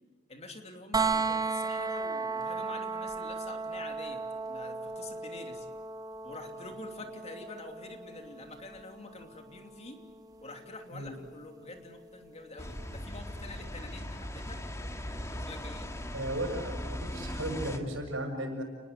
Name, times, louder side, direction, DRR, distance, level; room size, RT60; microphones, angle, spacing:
voice 1, 0.3-4.2 4.5-5.7 6.2-10.0 10.4-15.0 15.3-15.9, left 2 dB, 35° left, 4 dB, 2.9 m, -46 dB
sound 1, 0.9-12.7 14.7-14.8, right 4 dB, 20° right, 1.3 m, -36 dB
sound 2, 12.6-17.8, left 1 dB, 15° left, 1.9 m, -39 dB
voice 2, 16.1-18.6, right 1 dB, 85° right, 5 dB, 6.8 m, -35 dB
30.0 x 20.5 x 8.2 m, 1.3 s
head